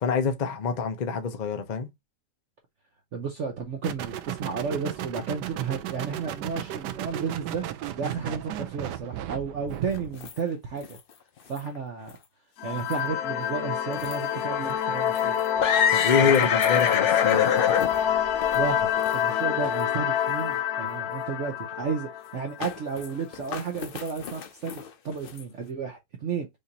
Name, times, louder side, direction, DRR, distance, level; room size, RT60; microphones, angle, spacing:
voice 1, 0.0-1.9 15.9-17.5, left 6 dB, 40° left, 0.6 m, -26 dB
voice 2, 3.1-7.6 7.9-11.0 11.5-12.1 12.6-15.4 16.2-16.5 18.5-26.5, right 5 dB, 55° right, 0.9 m, -32 dB
sound 1, 3.8-10.2, right 11 dB, 85° right, 1.2 m, -35 dB
sound 2, 9.9-10.3 10.8-11.0 11.6-11.7 12.1-12.2 12.7-13.1 14.0-14.1 14.7-14.8 15.1-19.4 19.6-19.7 20.5-20.6 22.6-23.1 23.3-25.4, left 8 dB, 85° left, 0.4 m, -27 dB
sound 3, 12.6-23.0, left 9 dB, 65° left, 1.1 m, -27 dB
5.1 x 2.6 x 2.8 m
omnidirectional pair, 1.8 m